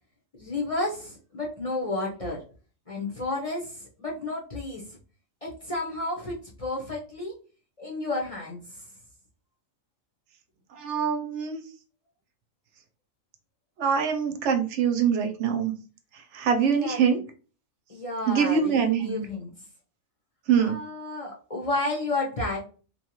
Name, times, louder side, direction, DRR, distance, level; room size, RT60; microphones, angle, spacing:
voice 1, 0.4-2.4 2.9-4.8 5.4-7.4 7.8-8.6 16.8-17.2 17.9-19.5 20.6-22.6, left 2 dB, 35° left, -4 dB, 0.6 m, -31 dB
voice 2, 10.8-11.6 13.8-15.7 16.3-17.2 18.3-19.2 20.5-20.7, right 7 dB, 65° right, 5 dB, 0.8 m, -24 dB
2.7 x 2.3 x 2.9 m, 0.37 s
omnidirectional pair, 1.4 m